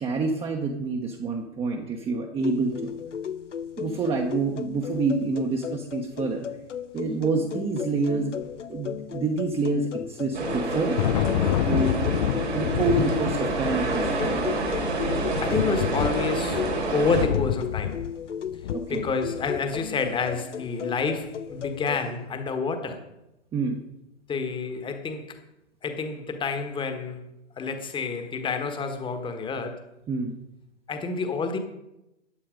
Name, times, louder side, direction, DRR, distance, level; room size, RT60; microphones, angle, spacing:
voice 1, 0.0-2.9 3.8-6.5 6.9-8.3 8.7-11.0 11.6-12.0 12.5-14.5 18.7-19.1 23.5-23.8 30.1-30.3, right 3 dB, 15° right, 1 dB, 1.1 m, -27 dB
sound 1, 2.4-22.0, left 8 dB, 85° left, 0.9 m, -35 dB
sound 2, 10.3-17.3, right 2 dB, 80° right, 5.2 m, -28 dB
Thunder, 10.4-19.8, left 12 dB, 35° left, 0.4 m, -29 dB
voice 2, 15.4-18.0 18.9-23.0 24.3-25.4 25.8-27.2 27.6-29.8 30.9-31.6, left 4 dB, 15° left, 7 dB, 1.4 m, -29 dB
14.5 x 9.8 x 5.2 m, 0.91 s
hypercardioid pair, 120°, 35 cm